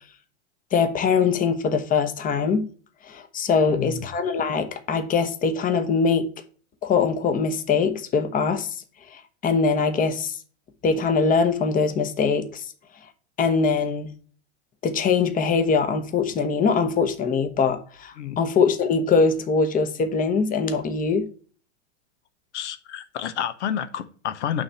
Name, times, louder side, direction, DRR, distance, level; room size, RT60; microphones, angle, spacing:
voice 1, 0.7-2.7 3.1-6.3 6.8-8.7 9.1-10.4 10.8-12.7 13.4-14.1 14.8-21.3, left 5 dB, 25° left, 1.0 m, -22 dB
voice 2, 3.6-4.1 18.2-18.4 22.5-24.6, left 9 dB, 75° left, 0.9 m, -29 dB
8.8 x 3.3 x 5.5 m
hypercardioid pair, 110°, 35 cm